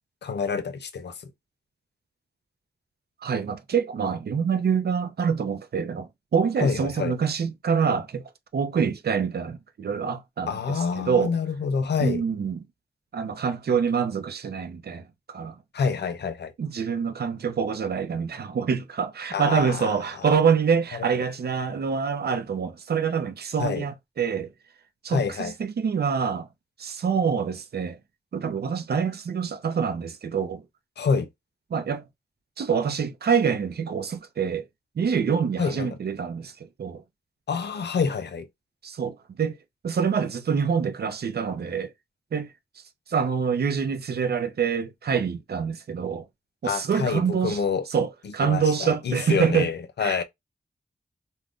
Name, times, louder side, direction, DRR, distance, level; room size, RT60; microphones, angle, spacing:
voice 1, 0.2-1.3 6.6-7.1 10.5-12.2 15.7-16.5 19.3-20.3 20.9-21.1 23.6-23.9 25.1-25.5 31.0-31.3 35.6-35.9 37.5-38.5 46.6-47.9 48.2-50.2, left 5 dB, 85° left, 0.5 m, -27 dB
voice 2, 3.2-8.2 8.5-11.3 12.0-12.7 13.1-15.6 16.6-24.5 25.0-26.5 26.8-28.0 28.3-30.6 31.7-32.0 32.6-34.7 35.0-37.0 38.8-39.6 39.8-41.9 42.3-42.5 43.1-46.3 46.6-47.6 47.9-49.7 50.0-50.2, right 6 dB, 70° right, 0.5 m, -26 dB
2.5 x 2.1 x 3.4 m
wide cardioid pair, 125°, 17 cm